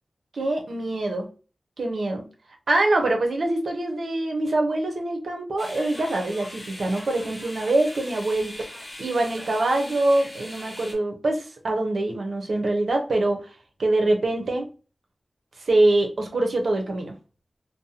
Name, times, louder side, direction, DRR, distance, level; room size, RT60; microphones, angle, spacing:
voice 1, 0.3-1.3 1.8-2.3 2.7-8.6 9.0-13.5 13.8-14.7 15.6-17.1, right 2 dB, 80° right, 2 dB, 0.6 m, -24 dB
sound 1, 5.6-10.9, left 1 dB, 30° left, 0.7 m, -40 dB
2.6 x 2.0 x 2.7 m, 0.35 s
wide cardioid pair, 85°, 0 cm